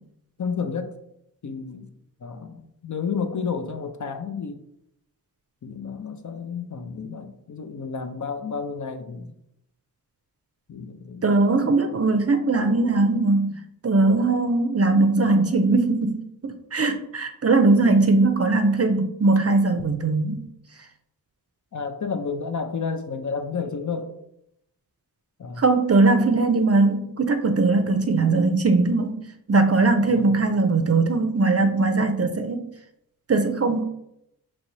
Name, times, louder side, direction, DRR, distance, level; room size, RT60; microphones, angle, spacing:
voice 1, 0.4-0.9 1.4-1.9 2.2-4.6 5.6-9.3 10.7-11.3 12.6-13.0 21.7-24.1 25.4-25.6 30.0-30.3, left 5 dB, 50° left, 8 dB, 0.5 m, -31 dB
voice 2, 11.2-20.5 25.6-29.2 29.5-32.6 33.3-33.8, right 3 dB, 40° right, 7 dB, 0.5 m, -20 dB
5.4 x 2.9 x 3.1 m, 0.79 s
wide cardioid pair, 80°, 39 cm